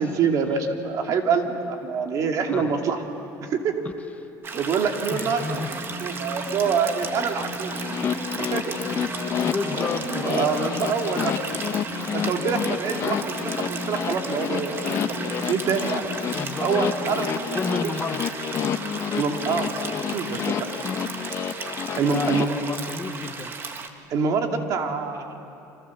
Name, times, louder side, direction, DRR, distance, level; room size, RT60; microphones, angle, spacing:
voice 1, 0.0-3.0 3.4-3.8 4.5-5.6 6.0-7.8 8.4-8.8 9.7-11.3 12.1-16.0 16.6-17.6 19.1-20.6 21.9-22.5 24.1-25.4, right 5 dB, 45° right, 3 dB, 2.7 m, -26 dB
sound 1, 4.4-23.9, right 4 dB, 30° right, 1.7 m, -35 dB
voice 2, 5.1-5.7 8.0-8.3 9.1-10.7 11.2-11.3 16.2-16.7 17.5-18.3 22.1-23.5, left 4 dB, 20° left, 6 dB, 1.2 m, -32 dB
sound 2, 5.5-17.7, right 1 dB, 5° left, 3.9 m, -38 dB
sound 3, 7.7-22.5, left 8 dB, 40° left, 1.1 m, -29 dB
30.0 x 26.0 x 7.4 m, 2.8 s
cardioid pair, 140°, 8 cm